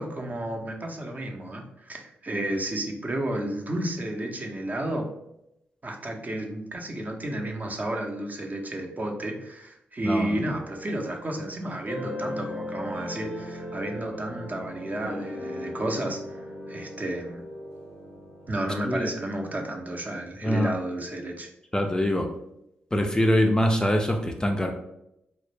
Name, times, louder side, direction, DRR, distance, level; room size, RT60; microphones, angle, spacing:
voice 1, 0.0-5.1 5.8-16.4 16.7-17.4 18.5-21.5, right 1 dB, 35° right, 2 dB, 0.5 m, -32 dB
voice 2, 10.0-10.5 18.8-19.1 20.4-20.8 21.7-22.3 22.9-24.7, equal, 15° left, 4 dB, 0.3 m, -24 dB
sound 1, 10.5-19.1, left 1 dB, 85° right, 0.8 m, -38 dB
2.0 x 2.0 x 3.1 m, 0.83 s
supercardioid pair, 40°, 5 cm